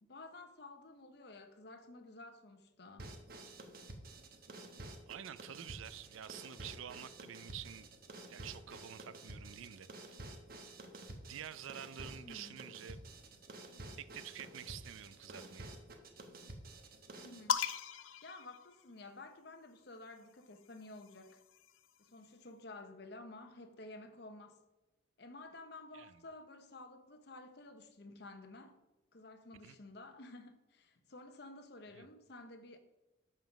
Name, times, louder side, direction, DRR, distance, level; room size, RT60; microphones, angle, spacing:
voice 1, 0.0-3.1 12.2-12.6 17.2-17.7 18.2-21.4 22.0-24.6 25.2-28.8 29.1-32.8, left 2 dB, 55° left, 0.8 m, -52 dB
sound 1, 3.0-17.5, right 2 dB, 50° right, 1.0 m, -51 dB
voice 2, 5.1-7.9 8.3-9.9 11.3-13.0 14.0-15.7 25.9-26.2 29.6-29.8 31.9-32.1, right 9 dB, 85° right, 0.4 m, -48 dB
sound 2, 17.5-19.3 20.4-22.1, left 7 dB, 85° left, 0.5 m, -40 dB
7.3 x 5.5 x 5.9 m
head